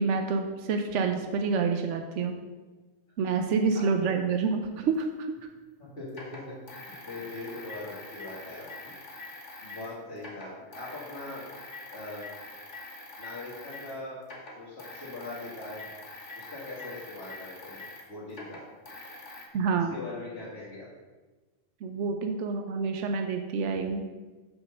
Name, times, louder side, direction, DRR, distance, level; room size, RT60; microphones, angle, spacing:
voice 1, 0.0-2.4 3.2-5.3 19.5-19.9 21.8-24.0, right 5 dB, 85° right, 5 dB, 1.0 m, -28 dB
sound 1, 5.0-5.1 6.1-9.9 10.2-14.0 14.2-19.4, left 2 dB, 75° left, 1.8 m, -44 dB
voice 2, 5.8-6.6 6.9-8.9 9.6-11.5 11.9-12.3 13.2-14.2 14.6-15.9 16.4-17.8 18.1-18.6 19.7-20.9, left 2 dB, 55° left, -8 dB, 2.1 m, -41 dB
6.4 x 5.2 x 6.5 m, 1.3 s
omnidirectional pair, 1.2 m